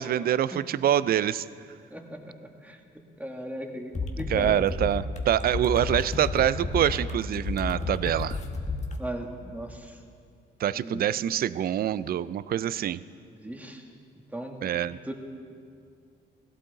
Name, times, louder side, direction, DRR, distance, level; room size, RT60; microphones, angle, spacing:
voice 1, 0.0-1.4 4.3-8.4 10.6-13.0 14.6-15.0, right 11 dB, 50° right, 17 dB, 0.4 m, -25 dB
voice 2, 1.9-2.8 3.2-4.6 9.0-10.0 10.7-11.1 13.3-13.9 14.3-14.6 15.0-15.1, right 1 dB, 5° right, 2 dB, 1.4 m, -38 dB
sound 1, 3.9-9.0, left 3 dB, 35° left, 1.3 m, -32 dB
17.0 x 12.0 x 3.9 m, 2.3 s
cardioid pair, 90°, 20 cm